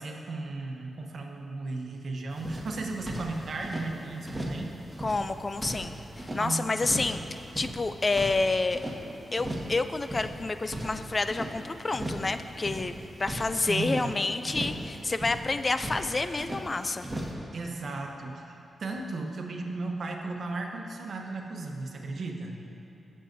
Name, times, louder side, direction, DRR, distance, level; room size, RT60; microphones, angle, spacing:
voice 1, 0.0-4.8 6.4-6.9 13.5-14.1 17.5-22.6, right 3 dB, 65° right, 2 dB, 1.0 m, -35 dB
sound 1, 2.3-3.9 4.2-4.6 4.9-6.4 6.8-7.2 7.4-9.0 9.3-9.7 10.0-11.5 11.9-12.3 12.5-14.1 14.4-14.8 15.1-16.6 17.0-17.3, right 1 dB, 20° right, 1.6 m, -37 dB
voice 2, 5.0-8.8 9.3-17.1, left 3 dB, 40° left, 10 dB, 0.4 m, -29 dB
16.0 x 6.5 x 2.7 m, 2.9 s
cardioid pair, 50°, 0 cm